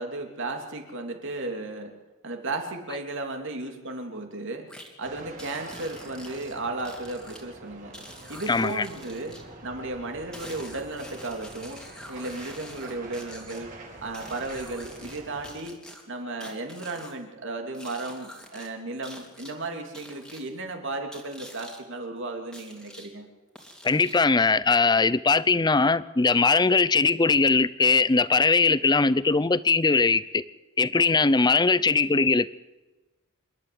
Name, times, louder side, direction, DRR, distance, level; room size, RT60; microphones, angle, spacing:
voice 1, 0.0-1.9 2.2-4.7 5.0-8.0 8.3-9.4 9.6-13.7 14.0-15.8 16.1-23.3, right 2 dB, 60° right, 3.1 m, -34 dB
sound 1, 4.7-4.9 5.4-7.4 7.9-9.4 10.3-13.6 14.1-15.2 15.4-17.2 17.7-18.7 19.0-19.5 19.9-20.4 21.1-21.8 22.5-23.1 23.5-24.3, equal, 5° left, 3.0 m, -46 dB
sound 2, 5.0-15.5, right 2 dB, 40° right, 4.7 m, -46 dB
voice 2, 8.5-8.8 23.8-30.4 30.8-32.5, left 4 dB, 20° left, 0.5 m, -21 dB
27.5 x 12.5 x 7.8 m
head